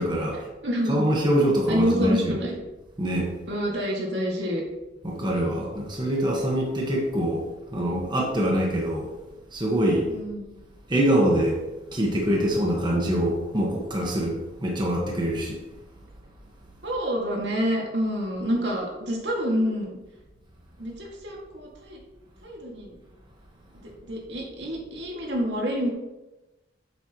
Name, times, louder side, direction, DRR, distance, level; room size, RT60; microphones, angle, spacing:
voice 1, 0.0-0.5 0.9-2.3 3.0-3.3 5.0-7.5 7.7-9.1 9.5-10.1 10.9-11.6 11.9-15.6, equal, 25° right, -2 dB, 1.3 m, -24 dB
voice 2, 0.6-1.0 1.7-2.6 3.5-4.6 5.2-5.6 10.1-10.5 16.8-20.0 20.8-22.0 22.4-23.0 24.0-25.9, equal, 70° right, -1 dB, 2.0 m, -27 dB
9.1 x 7.7 x 3.0 m, 1.0 s
head